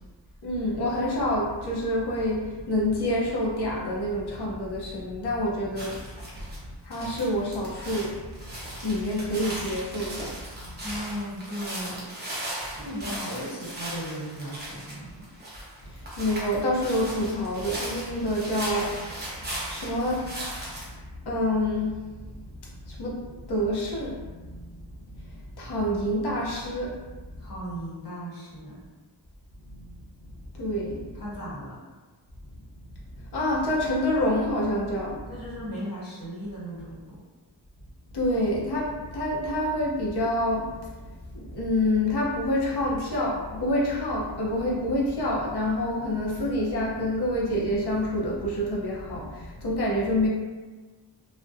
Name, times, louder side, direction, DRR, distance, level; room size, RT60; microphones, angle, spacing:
voice 1, 0.4-6.0 6.8-8.5 8.8-10.3 10.6-10.8 16.2-19.1 19.4-20.4 21.2-22.0 22.6-24.7 25.1-25.2 25.6-27.0 29.7-29.8 30.5-31.1 33.3-35.2 38.1-40.8 41.3-50.3, left 1 dB, 70° left, -4 dB, 0.7 m, -27 dB
sound 1, 5.8-6.6 6.9-20.9, right 1 dB, 25° right, 0.7 m, -37 dB
voice 2, 10.8-12.0 12.7-15.3 27.4-28.8 31.1-31.8 35.3-37.2, equal, 55° left, -8 dB, 1.0 m, -36 dB
2.4 x 2.1 x 2.4 m, 1.3 s
wide cardioid pair, 130°, 42 cm